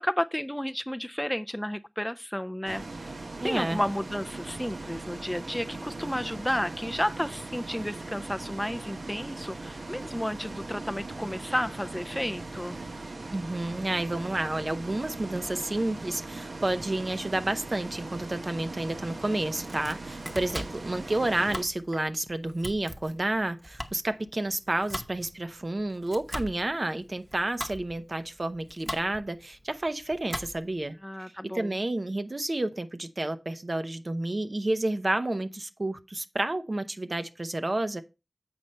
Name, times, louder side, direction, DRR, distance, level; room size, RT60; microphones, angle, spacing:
voice 1, 0.0-3.1 3.4-12.8 31.0-31.8, equal, 10° left, 0.3 m, -32 dB
Bus, 2.7-21.7, right 2 dB, 80° right, 0.8 m, -40 dB
voice 2, 3.4-3.8 13.3-31.0 31.4-38.0, right 2 dB, 45° right, 0.7 m, -30 dB
Domestic sounds home sounds, 19.5-30.9, equal, 10° right, 0.9 m, -41 dB
7.9 x 5.3 x 4.3 m
wide cardioid pair, 60°, 0 cm